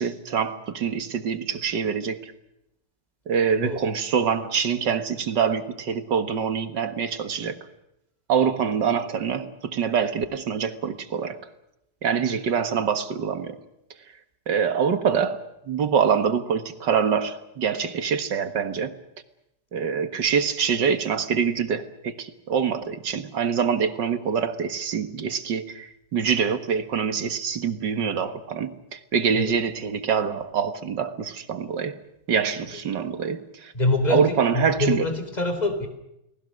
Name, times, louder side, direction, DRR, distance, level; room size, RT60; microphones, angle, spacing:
voice 1, 0.0-2.3 3.3-7.6 8.3-11.4 12.0-13.6 14.5-18.9 19.7-32.0 32.3-33.7 34.1-35.1, right 6 dB, 75° right, 2.2 m, -25 dB
voice 2, 33.7-35.9, left 2 dB, 20° left, 3.9 m, -25 dB
30.0 x 19.5 x 6.5 m
omnidirectional pair, 1.9 m